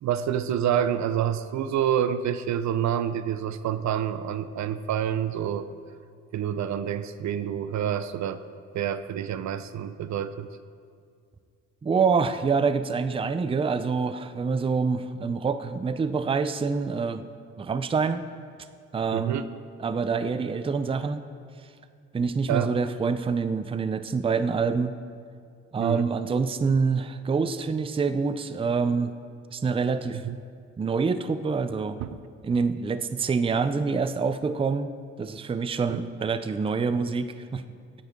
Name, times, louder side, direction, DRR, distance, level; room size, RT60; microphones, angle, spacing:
voice 1, 0.0-5.7 6.3-8.4 8.7-10.5 19.1-19.4 22.5-22.7 25.8-26.1 30.1-30.4 32.0-32.2 35.9-36.0, right 9 dB, 65° right, 12 dB, 0.6 m, -27 dB
voice 2, 11.8-17.2 17.6-18.2 18.9-19.4 19.8-21.2 22.1-25.0 25.7-29.1 29.5-30.2 30.8-32.0 32.4-34.9 35.2-37.6, right 5 dB, 20° right, 11 dB, 0.5 m, -26 dB
16.0 x 9.4 x 3.6 m, 2.2 s
cardioid pair, 90°, 30 cm